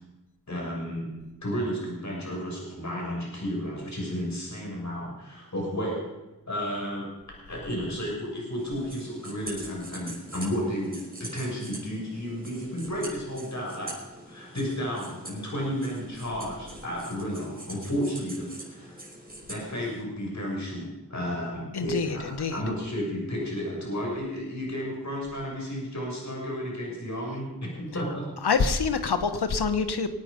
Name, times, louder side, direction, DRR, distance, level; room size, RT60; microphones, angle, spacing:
voice 1, 0.5-1.1 1.4-6.1 6.4-14.0 14.2-19.0 19.5-28.2, equal, 45° left, -2 dB, 6.6 m, -32 dB
sound 1, 8.6-20.0, right 1 dB, 20° right, 5.9 m, -44 dB
voice 2, 21.7-22.6 28.4-30.1, left 5 dB, 80° left, 9 dB, 1.3 m, -26 dB
23.0 x 9.1 x 5.3 m, 0.99 s
cardioid pair, 40°, 39 cm